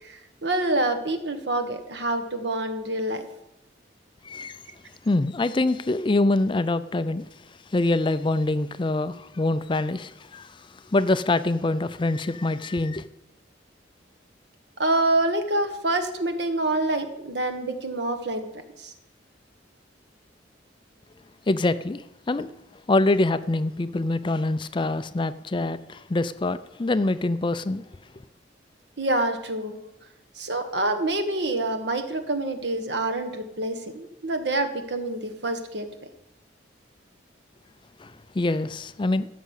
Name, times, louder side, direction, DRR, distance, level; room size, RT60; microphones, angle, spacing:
voice 1, 0.0-3.3 14.8-18.4 18.8-18.9 29.0-29.8 30.4-35.8, right 2 dB, 65° right, 1.5 m, -26 dB
voice 2, 4.2-4.6 5.1-7.3 7.7-10.6 10.9-13.1 21.5-22.5 22.9-27.8 38.0-39.3, left 2 dB, 25° left, 0.4 m, -25 dB
14.5 x 6.6 x 8.2 m
head